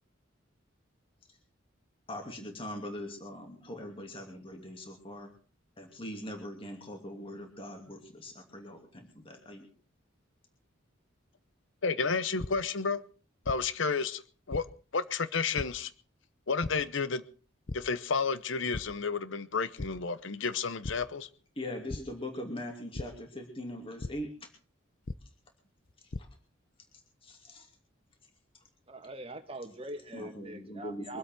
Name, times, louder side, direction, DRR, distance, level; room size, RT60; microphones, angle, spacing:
voice 1, 2.1-5.3 5.8-9.7 21.6-24.3 26.2-26.3 27.2-27.7 30.1-31.2, left 1 dB, 30° left, 2.7 m, -41 dB
voice 2, 11.8-13.0 13.5-14.2 14.5-14.7 14.9-15.9 16.5-17.2 17.7-21.3, left 5 dB, 70° left, 0.9 m, -31 dB
sound 1, 12.4-12.5 13.4-13.6 14.5-14.6 15.6-15.7 16.6-16.7 17.7-17.8 18.2-18.4 18.7-18.8 19.8-19.9 20.8-21.0 21.9-22.0 22.9-23.0 24.0-24.1 25.1-25.2 25.9-26.2, left 2 dB, 45° left, 0.7 m, -36 dB
voice 3, 28.9-31.2, right 1 dB, 30° right, 2.0 m, -42 dB
24.0 x 8.2 x 6.0 m
head